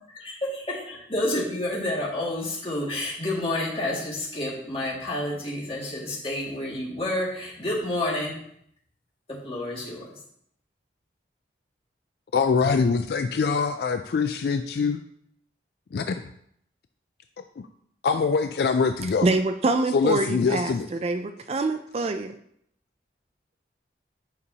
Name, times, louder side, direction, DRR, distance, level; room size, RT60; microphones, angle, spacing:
voice 1, 0.2-8.3 9.3-10.1, left 1 dB, 30° left, -5 dB, 2.1 m, -29 dB
voice 2, 12.3-15.0 15.9-16.2 17.6-17.7 18.0-19.3 19.9-20.9, left 5 dB, 65° left, 7 dB, 0.3 m, -24 dB
voice 3, 19.2-22.3, right 2 dB, 35° right, 8 dB, 0.3 m, -25 dB
9.6 x 5.3 x 2.8 m, 0.70 s
head